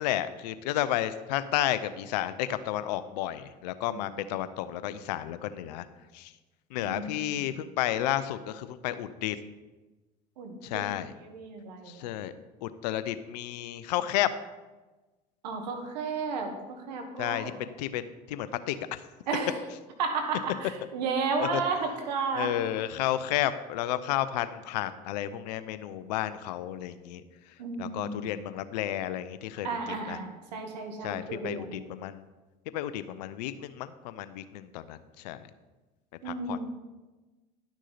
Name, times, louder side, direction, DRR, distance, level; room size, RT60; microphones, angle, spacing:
voice 1, 0.0-5.8 6.1-6.3 6.7-9.4 10.6-11.1 11.9-12.3 12.6-14.3 17.2-19.0 21.4-21.5 22.3-27.2 27.8-29.7 30.1-30.2 31.0-32.3 32.7-35.4 36.2-36.6, left 13 dB, 80° left, 13 dB, 0.6 m, -32 dB
voice 2, 6.8-7.5 10.4-10.8 11.2-12.1 15.4-17.6 19.3-19.6 20.0-22.5 27.6-28.3 29.6-31.8 36.2-36.7, right 4 dB, 85° right, 4 dB, 1.4 m, -33 dB
11.5 x 6.2 x 4.1 m, 1.2 s
hypercardioid pair, 75°, 21 cm